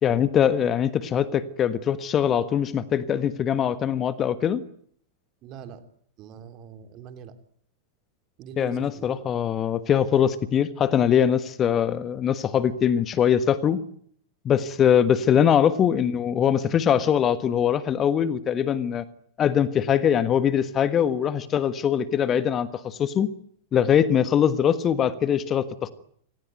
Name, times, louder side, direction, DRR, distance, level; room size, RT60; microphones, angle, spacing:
voice 1, 0.0-4.6 8.6-13.8 14.4-19.0 19.4-23.3 23.7-25.9, left 9 dB, 25° left, 15 dB, 1.5 m, -22 dB
voice 2, 5.4-5.8 6.2-7.3 8.4-9.2, right 7 dB, 35° right, 9 dB, 3.4 m, -43 dB
27.0 x 18.5 x 9.2 m, 0.64 s
figure-of-eight pair, 90°, 0 cm